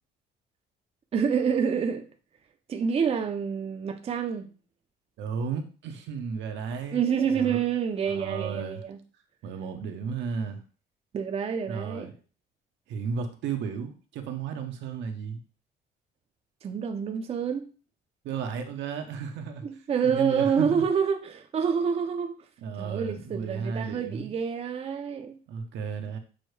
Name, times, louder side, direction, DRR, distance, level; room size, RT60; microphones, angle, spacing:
voice 1, 1.1-2.0 2.7-4.5 6.9-9.0 11.1-12.1 16.6-17.7 19.6-22.3 22.8-25.4, right 7 dB, 35° right, 6 dB, 0.5 m, -27 dB
voice 2, 5.2-7.0 7.3-7.6 8.1-8.8 9.4-10.6 11.7-12.1 12.9-15.4 18.2-19.7 20.0-20.8 22.6-24.3 25.5-26.2, right 6 dB, 75° right, 6 dB, 0.7 m, -34 dB
6.2 x 2.1 x 3.1 m, 0.36 s
cardioid pair, 105°, 19 cm